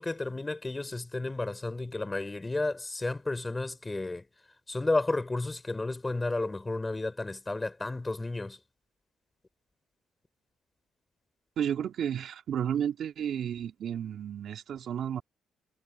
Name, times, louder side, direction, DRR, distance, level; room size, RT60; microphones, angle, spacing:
voice 1, 0.0-4.3 4.7-8.6, left 2 dB, 20° left, 3.8 m, -32 dB
voice 2, 11.6-15.2, right 9 dB, 65° right, 3.3 m, -32 dB
cardioid pair, 90°, 0 cm